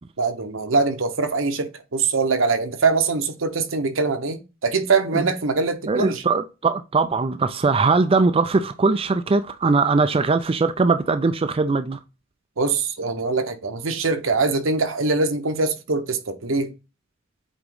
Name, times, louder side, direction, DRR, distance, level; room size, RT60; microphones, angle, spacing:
voice 1, 0.2-6.2 12.6-16.7, right 4 dB, 80° right, 1.0 m, -23 dB
voice 2, 5.9-12.0, right 4 dB, 30° right, 0.4 m, -20 dB
8.1 x 3.0 x 3.9 m
head